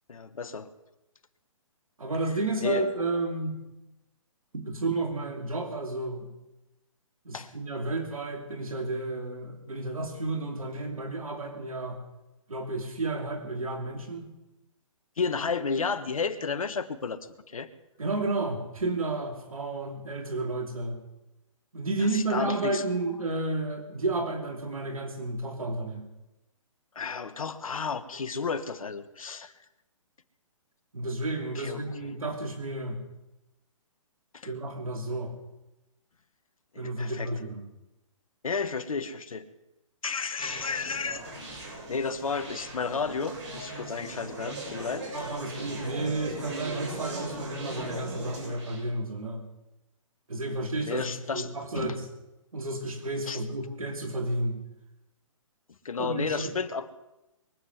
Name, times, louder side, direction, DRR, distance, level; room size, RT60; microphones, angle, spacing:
voice 1, 0.1-0.7 2.6-2.9 7.3-7.5 15.2-17.2 17.5-17.7 22.0-22.8 26.9-29.5 31.5-32.1 34.3-34.5 36.7-37.3 38.4-39.5 40.0-41.2 41.9-45.1 50.9-51.5 51.7-51.9 53.3-53.4 55.8-56.9, left 5 dB, 80° left, 12 dB, 1.5 m, -32 dB
voice 2, 2.0-3.6 4.5-6.3 7.2-12.0 12.5-14.3 18.0-21.0 21.7-26.1 30.9-33.0 34.4-35.3 36.8-37.6 45.1-49.4 50.3-52.1 52.5-54.6 56.0-56.5, right 2 dB, 85° right, 4 dB, 2.9 m, -32 dB
Conversation, 40.4-48.8, right 2 dB, 55° right, 7.6 m, -39 dB
22.5 x 7.8 x 8.1 m, 0.97 s
hypercardioid pair, 140°, 17 cm